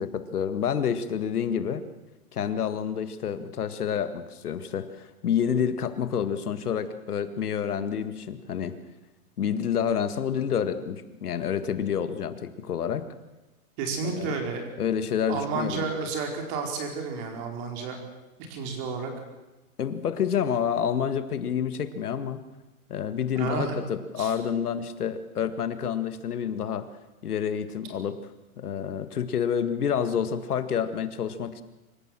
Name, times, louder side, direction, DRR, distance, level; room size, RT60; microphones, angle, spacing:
voice 1, 0.0-1.8 2.3-8.8 9.4-13.0 14.0-14.3 14.8-16.0 19.8-22.4 22.9-26.9 27.2-28.2 28.6-31.6, left 8 dB, 80° left, 11 dB, 2.0 m, -28 dB
voice 2, 13.8-14.6 15.3-18.0 18.5-19.1 23.3-23.8 24.2-24.3, right 4 dB, 30° right, 3 dB, 4.4 m, -31 dB
25.5 x 14.5 x 7.7 m, 1.1 s
hypercardioid pair, 155°, 45 cm